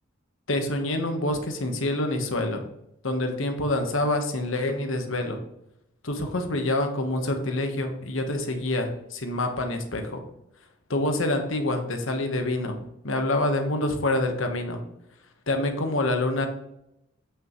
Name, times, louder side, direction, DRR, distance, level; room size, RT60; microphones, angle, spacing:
voice 1, 0.5-2.7 3.0-5.4 6.0-10.2 10.9-14.8 15.5-16.5, left 1 dB, 85° left, 5 dB, 1.3 m, -26 dB
8.1 x 6.3 x 3.1 m, 0.82 s
head